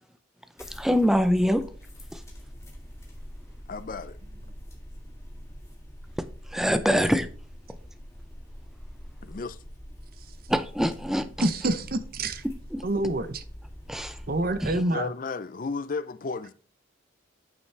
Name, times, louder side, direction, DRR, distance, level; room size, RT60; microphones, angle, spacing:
sound 1, 0.6-14.8, equal, 15° left, 1.8 m, -44 dB
voice 1, 0.6-1.6 2.1-2.2 6.5-7.3 10.5-11.5 12.7-12.8 13.9-14.2 14.6-14.8, equal, ahead, 0.6 m, -24 dB
voice 2, 3.7-4.2 9.2-9.6 14.7-16.5, left 4 dB, 40° left, 0.4 m, -34 dB
voice 3, 11.4-12.4 12.8-13.4 14.3-15.1, right 2 dB, 45° right, 0.7 m, -27 dB
8.9 x 6.9 x 3.3 m
head